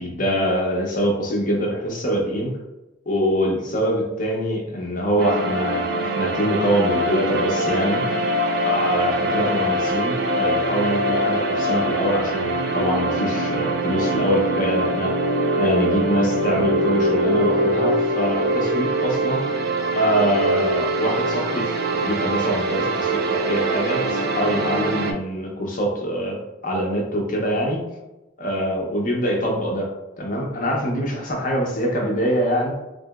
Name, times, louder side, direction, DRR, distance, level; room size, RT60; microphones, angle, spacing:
voice 1, 0.0-2.5 3.1-8.0 8.6-15.2 15.5-19.4 19.9-21.7 22.0-27.8 28.4-32.7, equal, 45° left, 0 dB, 0.6 m, -24 dB
sound 1, 5.2-25.1, right 1 dB, 55° right, 0.3 m, -23 dB
2.8 x 2.6 x 2.3 m, 0.99 s
head